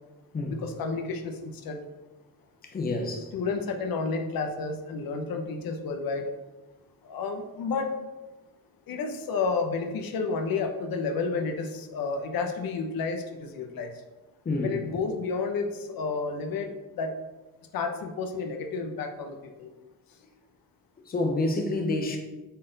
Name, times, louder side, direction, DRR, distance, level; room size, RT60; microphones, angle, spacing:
voice 1, 0.5-1.8 3.3-6.3 7.0-7.9 8.9-13.9 14.6-16.7 17.0-17.1 17.7-19.7, left 4 dB, 80° left, 0.9 m, -31 dB
voice 2, 2.6-3.3 14.4-14.8 21.1-22.2, left 2 dB, 25° left, 0.9 m, -28 dB
8.2 x 4.2 x 3.9 m
cardioid pair, 160°, 35 cm